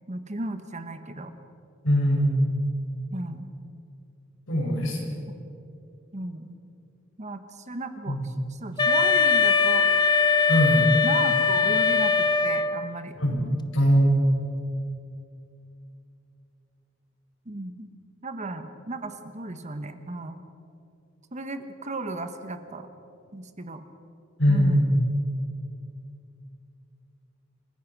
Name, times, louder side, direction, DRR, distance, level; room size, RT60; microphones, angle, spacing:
voice 1, 0.1-1.3 3.1-3.5 6.1-6.6 7.2-9.9 11.0-13.2 17.4-17.9 18.2-20.4 21.3-22.9 23.3-23.8 24.5-25.0, right 2 dB, 35° right, 8 dB, 1.3 m, -35 dB
voice 2, 1.8-2.6 4.5-5.2 8.1-8.2 10.5-10.9 13.2-13.4 13.7-14.2 24.4-25.0, equal, 75° left, -1 dB, 6.3 m, -21 dB
Wind instrument woodwind instrument, 8.8-13.0, left 5 dB, 20° left, 0.8 m, -21 dB
28.5 x 15.5 x 6.2 m, 2.6 s
head